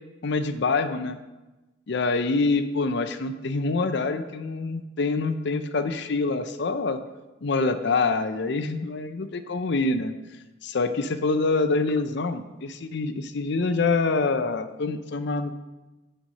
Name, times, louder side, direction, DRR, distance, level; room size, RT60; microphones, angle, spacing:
voice 1, 0.2-1.2 1.9-7.0 7.4-10.1 10.6-15.5, left 3 dB, 60° left, 10 dB, 0.6 m, -26 dB
9.0 x 5.6 x 6.4 m, 1.1 s
head